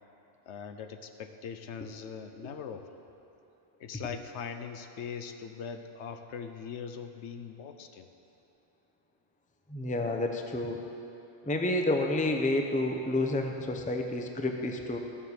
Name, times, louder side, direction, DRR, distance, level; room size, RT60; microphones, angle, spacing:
voice 1, 0.5-2.8 3.8-8.1, left 6 dB, 75° left, 7 dB, 1.0 m, -41 dB
voice 2, 9.7-10.8 11.4-15.0, left 1 dB, 10° left, 3 dB, 0.5 m, -29 dB
13.0 x 7.3 x 6.6 m, 2.8 s
omnidirectional pair, 1.2 m